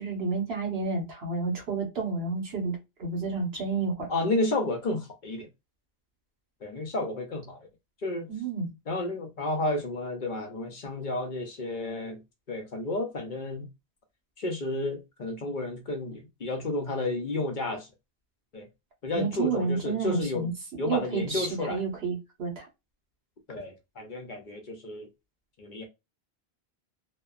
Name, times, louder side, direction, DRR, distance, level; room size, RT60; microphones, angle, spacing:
voice 1, 0.0-4.1 8.3-8.7 19.1-20.5 20.8-22.7, right 4 dB, 80° right, 1.4 m, -30 dB
voice 2, 4.1-5.5 6.6-7.7 8.0-8.3 8.9-12.2 12.5-13.7 14.4-17.9 18.5-18.7 19.0-20.5 20.8-21.8 23.5-25.1 25.6-25.9, left 2 dB, 55° left, 0.8 m, -31 dB
2.7 x 2.1 x 2.3 m
omnidirectional pair, 1.0 m